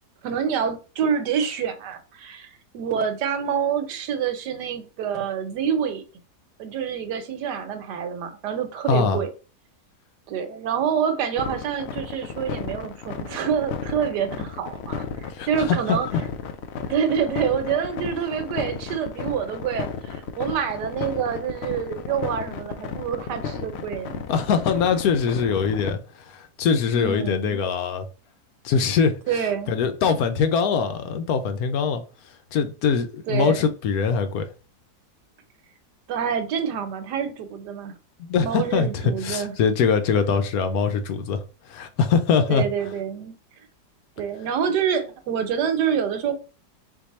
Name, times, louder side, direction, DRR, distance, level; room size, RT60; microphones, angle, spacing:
voice 1, 0.2-6.0 6.6-9.3 10.3-16.1 16.9-24.3 26.9-27.6 29.3-29.7 33.3-33.7 36.1-37.9 38.4-39.5 42.5-43.4 44.2-46.3, right 7 dB, 80° right, 1.4 m, -27 dB
voice 2, 8.9-9.2 15.3-16.2 24.3-28.1 28.6-29.1 29.7-32.0 32.5-34.5 38.2-42.6, left 6 dB, 70° left, 1.0 m, -23 dB
sound 1, 11.4-25.9, left 6 dB, 90° left, 0.5 m, -33 dB
4.4 x 2.6 x 4.1 m
omnidirectional pair, 1.8 m